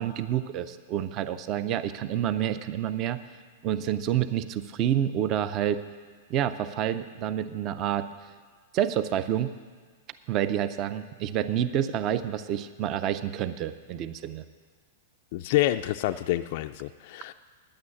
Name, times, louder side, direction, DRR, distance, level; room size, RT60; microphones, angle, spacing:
voice 1, 0.0-3.2 3.6-5.8 6.3-8.1 8.7-9.6 10.3-14.4, right 10 dB, 30° right, 12 dB, 0.4 m, -28 dB
voice 2, 15.3-17.3, left 15 dB, 45° left, 8 dB, 0.3 m, -27 dB
9.4 x 8.8 x 9.6 m, 1.5 s
supercardioid pair, 165°, 0 cm